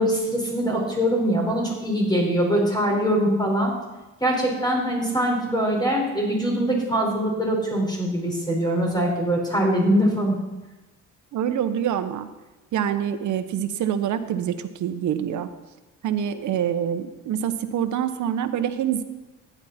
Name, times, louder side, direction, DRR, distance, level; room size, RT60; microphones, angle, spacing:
voice 1, 0.0-3.7 4.2-10.3, equal, 15° left, -1 dB, 5.0 m, -23 dB
voice 2, 11.3-12.3 12.7-15.5 16.0-19.0, right 9 dB, 70° right, 10 dB, 1.1 m, -26 dB
14.5 x 10.5 x 4.4 m, 1.1 s
cardioid pair, 90°, 30 cm